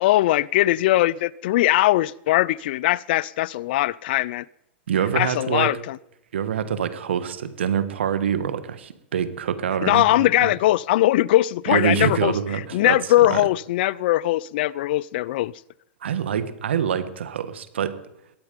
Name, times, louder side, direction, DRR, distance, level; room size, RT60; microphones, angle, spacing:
voice 1, 0.0-4.4 5.2-6.0 9.8-12.3 12.7-15.5, left 16 dB, 60° left, 0.4 m, -20 dB
voice 2, 4.9-5.7 6.3-10.5 11.7-13.5 16.0-18.0, right 8 dB, 90° right, 1.3 m, -25 dB
21.0 x 8.9 x 5.2 m
hypercardioid pair, 140°, 6 cm